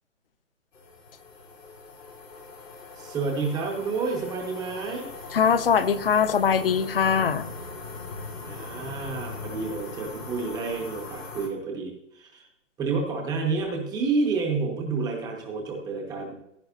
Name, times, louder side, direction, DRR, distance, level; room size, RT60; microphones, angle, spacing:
sound 1, 0.7-11.5, left 4 dB, 85° left, 3.4 m, -40 dB
voice 1, 3.0-5.1 8.4-12.5 12.8-16.3, right 4 dB, ahead, -6 dB, 0.5 m, -29 dB
voice 2, 5.3-7.5, left 7 dB, 50° left, 13 dB, 0.7 m, -22 dB
16.0 x 8.9 x 2.7 m, 0.79 s
hypercardioid pair, 155°, 38 cm